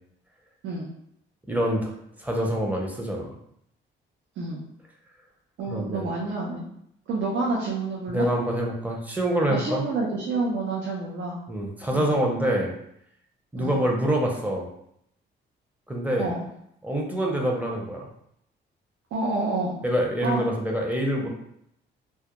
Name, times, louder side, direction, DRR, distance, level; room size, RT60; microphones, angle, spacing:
voice 1, 1.5-1.9 2.2-3.3 5.7-6.1 8.1-9.8 11.5-12.7 13.5-14.7 15.9-16.3 16.8-18.1 19.8-21.3, right 1 dB, 10° right, 0 dB, 0.6 m, -26 dB
voice 2, 5.6-6.7 7.1-8.3 9.5-11.4 11.9-12.2 13.6-13.8 16.2-16.4 19.1-19.8 20.2-20.5, right 3 dB, 80° right, -4 dB, 0.6 m, -28 dB
2.3 x 2.1 x 2.9 m, 0.74 s
cardioid pair, 90°, 20 cm